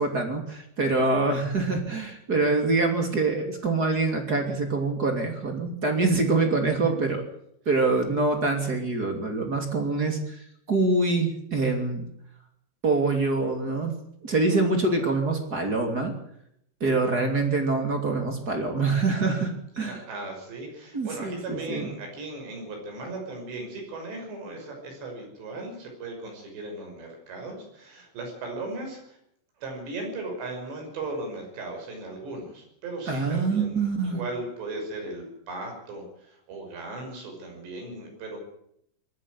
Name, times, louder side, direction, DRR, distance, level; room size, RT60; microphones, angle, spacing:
voice 1, 0.0-7.3 7.6-12.1 12.8-13.9 14.2-16.2 16.8-20.0 20.9-21.9 33.1-34.2, right 3 dB, 25° right, 4 dB, 2.7 m, -25 dB
voice 2, 19.9-29.2 29.6-38.4, right 2 dB, 75° right, 2 dB, 8.0 m, -37 dB
20.5 x 14.0 x 9.8 m, 0.74 s
omnidirectional pair, 5.1 m